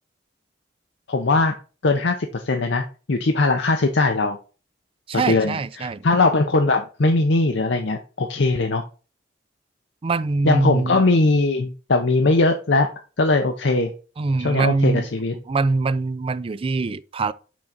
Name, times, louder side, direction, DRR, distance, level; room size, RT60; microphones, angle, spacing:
voice 1, 1.1-1.5 1.8-4.4 5.1-8.8 10.4-12.9 13.2-13.9 14.4-15.3, left 3 dB, 70° left, 0.7 m, -20 dB
voice 2, 5.1-6.0 10.0-11.0 14.2-15.1 15.5-17.3, right 3 dB, 30° right, 0.4 m, -23 dB
6.2 x 3.8 x 5.9 m
head